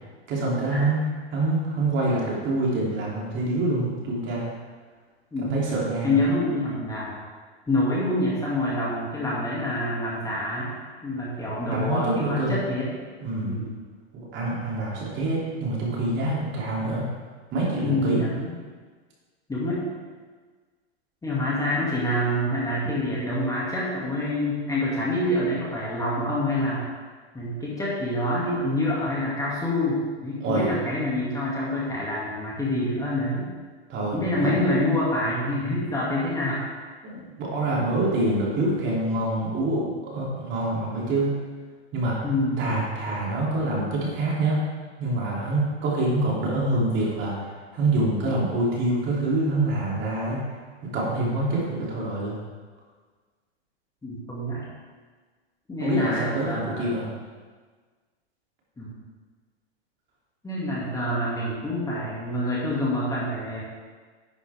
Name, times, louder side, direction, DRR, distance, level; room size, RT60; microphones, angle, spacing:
voice 1, 0.3-1.0 1.3-4.5 5.4-6.2 11.7-12.6 13.2-13.5 14.1-17.0 17.5-18.2 30.4-30.7 33.9-34.5 37.0-41.3 41.9-42.2 42.6-44.6 45.0-47.3 47.7-50.4 50.9-52.4 55.8-57.1, right 2 dB, 35° right, -5 dB, 3.3 m, -26 dB
voice 2, 6.0-7.2 7.7-10.7 11.0-12.9 13.4-13.7 17.8-18.5 19.5-19.8 21.2-26.9 27.3-33.5 34.1-36.6 42.2-42.7 54.0-54.6 55.7-57.0 58.8-58.9 60.4-63.6, left 1 dB, 10° left, -7 dB, 2.5 m, -26 dB
10.5 x 8.2 x 3.7 m, 1.5 s
hypercardioid pair, 120°, 33 cm